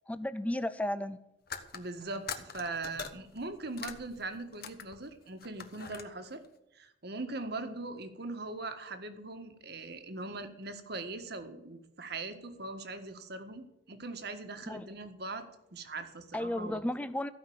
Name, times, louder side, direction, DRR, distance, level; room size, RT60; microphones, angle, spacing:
voice 1, 0.1-1.2 14.7-14.9 16.3-17.3, left 1 dB, 5° left, 0.5 m, -33 dB
sound 1, 1.5-5.1 5.4-6.0, left 6 dB, 50° left, 1.2 m, -42 dB
voice 2, 1.7-6.4 6.7-16.8, right 3 dB, 55° right, 1.6 m, -41 dB
15.5 x 5.8 x 9.4 m
head